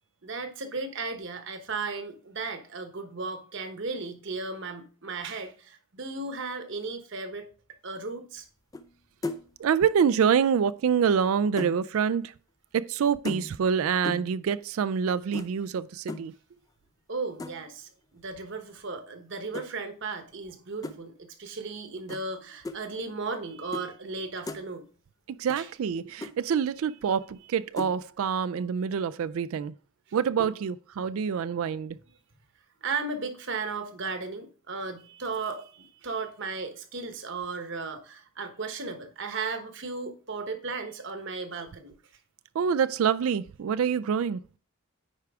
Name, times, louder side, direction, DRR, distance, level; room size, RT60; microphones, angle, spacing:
voice 1, 0.2-7.5 7.8-8.5 17.1-24.9 25.6-25.7 32.8-41.9, right 4 dB, 55° right, 1.0 m, -35 dB
sound 1, 8.7-9.0 9.2-9.6 10.8-11.8 13.2-13.7 14.0-14.4 15.3-15.5 16.1-16.3 17.4-17.7 19.5-19.7 20.8-21.0 22.1-22.2 22.6-22.8 23.7-23.9 24.2-24.6 25.5-25.6 25.9-26.0 26.2-26.3 27.8-28.0, left 2 dB, 15° left, 0.4 m, -36 dB
voice 2, 9.6-12.3 12.7-16.3 25.4-29.7 30.1-32.0 42.6-44.4, right 7 dB, 70° right, 0.3 m, -26 dB
9.7 x 4.6 x 3.5 m
head